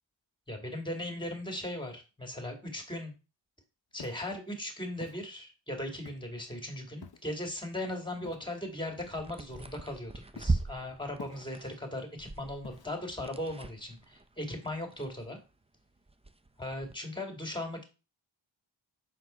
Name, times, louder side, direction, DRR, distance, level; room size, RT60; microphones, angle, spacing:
voice 1, 0.5-3.1 3.9-15.4 16.6-17.8, left 1 dB, 10° left, 3 dB, 2.3 m, -38 dB
Walk footsteps, 3.9-4.3 5.0-5.2 6.1-6.4 7.0-7.4 8.2-8.6 9.5-10.0 10.4-10.7 11.2-11.7 12.6-13.1, left 6 dB, 50° left, 0.7 m, -49 dB
sound 1, 8.6-15.6 16.0-17.0, right 3 dB, 15° right, 0.5 m, -39 dB
6.5 x 4.1 x 4.4 m, 0.31 s
cardioid pair, 45°, 48 cm